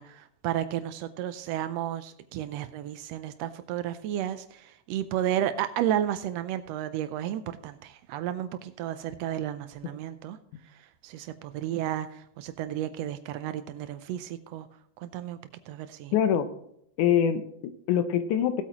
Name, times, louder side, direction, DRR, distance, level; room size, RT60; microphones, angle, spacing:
voice 1, 0.0-10.4 10.8-14.7 15.0-15.4 15.7-16.1, right 11 dB, 85° right, 11 dB, 1.5 m, -32 dB
voice 2, 16.1-16.5 17.0-18.6, left 9 dB, 80° left, 9 dB, 2.2 m, -25 dB
17.5 x 8.3 x 3.0 m, 0.72 s
omnidirectional pair, 3.6 m